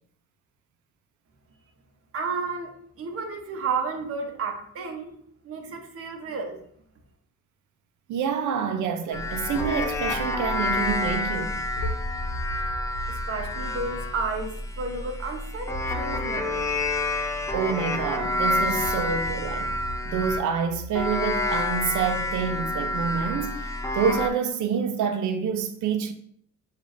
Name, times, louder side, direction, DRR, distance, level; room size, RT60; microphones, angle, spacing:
voice 1, 2.1-5.1 5.4-6.6 13.1-16.7, right 4 dB, 50° right, 0.9 m, -32 dB
voice 2, 8.1-11.6 17.5-19.8 20.1-23.7 23.9-26.1, right 7 dB, 75° right, 0.7 m, -27 dB
sound 1, 9.1-20.5 21.0-24.3, left 2 dB, 10° left, 0.5 m, -29 dB
sound 2, 9.5-21.0, equal, 75° left, 0.9 m, -39 dB
6.9 x 2.7 x 2.6 m
cardioid pair, 90°, 30 cm